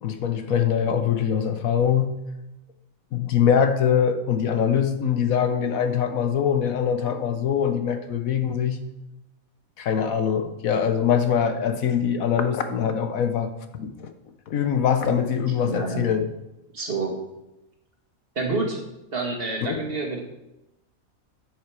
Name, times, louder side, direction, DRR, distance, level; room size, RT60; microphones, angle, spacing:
voice 1, 0.0-2.2 3.1-8.8 9.8-13.5 13.8-14.1 14.5-16.2 19.6-19.7, left 8 dB, 75° left, 8 dB, 1.3 m, -23 dB
voice 2, 15.6-16.1 16.7-17.1 18.4-18.8 19.1-20.2, right 3 dB, 40° right, 1 dB, 2.0 m, -28 dB
9.8 x 7.6 x 4.8 m, 0.94 s
omnidirectional pair, 1.5 m